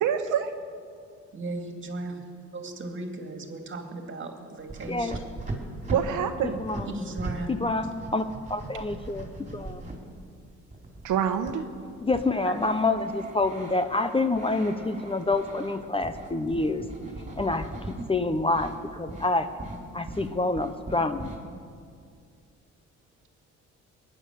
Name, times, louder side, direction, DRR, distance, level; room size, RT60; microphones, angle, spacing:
voice 1, 0.0-0.5 5.9-6.6 11.0-11.7, right 8 dB, 85° right, 7 dB, 1.1 m, -26 dB
voice 2, 1.3-2.2 2.5-5.1 6.9-7.5 12.4-12.6, right 2 dB, 40° right, 4 dB, 2.4 m, -36 dB
sound 1, 4.7-7.4 7.7-10.0 10.7-18.1 18.4-18.8 19.1-19.3 19.6-21.4, right 2 dB, 25° right, 3.8 m, -39 dB
voice 3, 6.4-6.9 7.5-9.3 9.5-9.8 12.0-16.8 17.4-17.7 18.1-19.5 19.9-21.3, left 2 dB, 20° left, 10 dB, 0.8 m, -27 dB
21.0 x 9.9 x 6.6 m, 2.2 s
cardioid pair, 90°, 30 cm